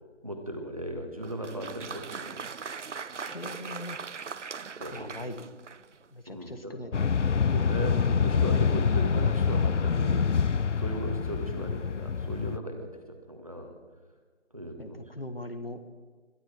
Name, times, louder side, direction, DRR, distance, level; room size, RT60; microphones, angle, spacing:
voice 1, 0.2-2.5 4.8-5.2 6.3-7.0 7.5-10.3 10.8-13.7 14.5-15.0, equal, 30° right, 4 dB, 1.6 m, -37 dB
Applause, 1.2-6.0, right 5 dB, 80° right, 0.6 m, -40 dB
voice 2, 3.2-4.0 4.9-5.4 6.1-6.9 14.8-15.9, left 1 dB, 55° left, 9 dB, 1.5 m, -40 dB
sound 1, 6.9-12.6, left 6 dB, 80° left, 0.6 m, -26 dB
22.0 x 12.0 x 4.7 m, 1.4 s
figure-of-eight pair, 180°, 36 cm